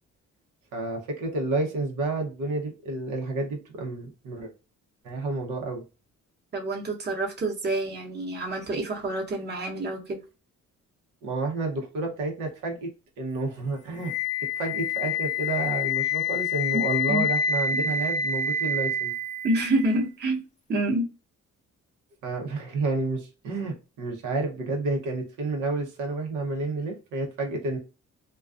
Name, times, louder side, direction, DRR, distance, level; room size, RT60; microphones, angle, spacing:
voice 1, 0.7-4.5 5.0-5.8 11.2-12.9 13.2-14.1 14.6-19.1 22.2-27.8, right 3 dB, 90° right, 0.8 m, -30 dB
voice 2, 6.5-10.2 16.7-17.2 19.4-20.4 20.7-21.1, right 1 dB, 35° right, 0.9 m, -27 dB
Wind instrument woodwind instrument, 14.0-20.0, left 4 dB, 25° left, 0.6 m, -27 dB
2.4 x 2.3 x 2.4 m
cardioid pair, 90°, 30 cm